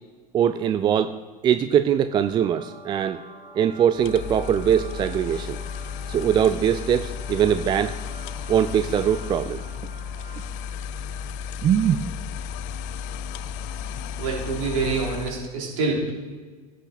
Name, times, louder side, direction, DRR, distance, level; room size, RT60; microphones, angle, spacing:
voice 1, 0.3-1.1 1.4-3.2 3.6-5.6 6.1-7.9 8.5-9.6 11.6-12.0, right 9 dB, 25° right, 11 dB, 0.4 m, -21 dB
sound 1, 2.0-10.9, right 2 dB, 85° right, 3.7 m, -47 dB
sound 2, 4.0-15.5, left 7 dB, 40° left, 0.4 m, -34 dB
voice 2, 14.2-16.1, right 4 dB, 60° right, -1 dB, 3.2 m, -26 dB
16.0 x 5.9 x 4.2 m, 1.4 s
figure-of-eight pair, 80°, 20 cm